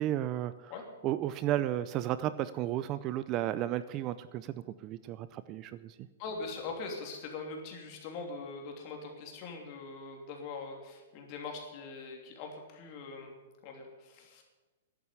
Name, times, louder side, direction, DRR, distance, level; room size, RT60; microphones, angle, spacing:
voice 1, 0.0-0.7 1.0-5.9, right 13 dB, 30° right, 14 dB, 0.5 m, -33 dB
voice 2, 6.2-13.3 13.6-14.4, left 4 dB, 40° left, 2 dB, 3.0 m, -42 dB
11.0 x 9.0 x 9.7 m, 1.2 s
hypercardioid pair, 150°, 0 cm